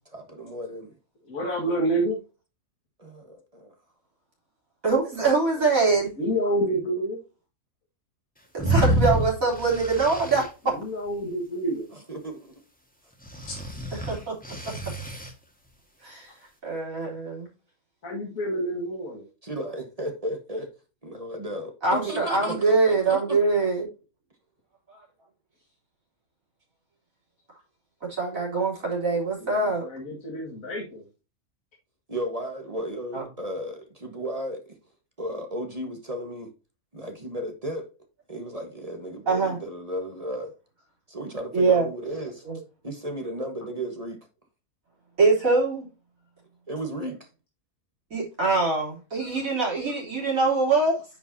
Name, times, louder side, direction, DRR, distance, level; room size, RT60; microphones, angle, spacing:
voice 1, 0.1-0.9 3.0-3.7 5.2-6.0 11.9-12.5 19.4-20.7 21.0-23.4 32.1-34.8 35.2-36.5 36.9-37.9 38.3-40.5 41.1-42.4 42.8-44.2 46.7-47.3, right 1 dB, 25° right, 1.5 m, -34 dB
voice 2, 1.3-2.2 6.2-7.2 10.7-11.9 13.5-13.6 18.0-19.2 29.4-31.0, right 1 dB, 70° left, 2.4 m, -28 dB
voice 3, 4.8-6.1 8.5-10.5 13.9-14.3 16.0-16.3 16.6-17.5 21.8-23.9 24.9-25.0 28.0-29.8 33.1-33.2 39.3-39.6 41.5-41.9 42.4-42.6 45.2-45.8 48.1-51.0, right 3 dB, 70° right, 4.3 m, -23 dB
sound 1, 8.6-10.5 13.3-15.3, right 1 dB, 5° left, 1.7 m, -27 dB
9.9 x 5.5 x 2.8 m
omnidirectional pair, 1.5 m